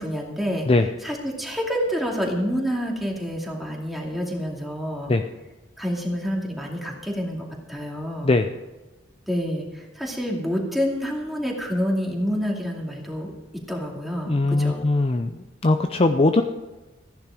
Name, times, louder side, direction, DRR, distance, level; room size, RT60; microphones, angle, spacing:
voice 1, 0.0-0.7 1.0-5.1 5.8-8.4 9.3-13.3 13.7-14.8, equal, ahead, -1 dB, 2.4 m, -28 dB
voice 2, 14.3-16.4, left 2 dB, 30° left, 6 dB, 0.5 m, -20 dB
15.0 x 10.5 x 5.0 m, 1.2 s
head